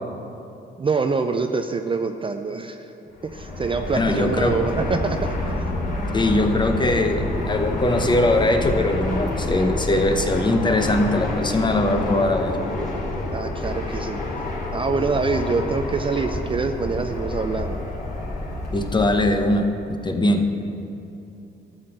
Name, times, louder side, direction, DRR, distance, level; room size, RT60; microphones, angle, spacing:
voice 1, 0.8-2.8 3.2-5.3 13.3-14.2 14.7-17.8, right 4 dB, 25° right, 7 dB, 0.5 m, -25 dB
Fixed-wing aircraft airplane, 3.1-19.5, left 2 dB, 45° left, 2.6 m, -28 dB
voice 2, 3.9-4.6 6.1-12.6 18.7-20.5, left 2 dB, 25° left, 5 dB, 0.8 m, -21 dB
12.0 x 4.3 x 7.7 m, 2.8 s
cardioid pair, 90°, 20 cm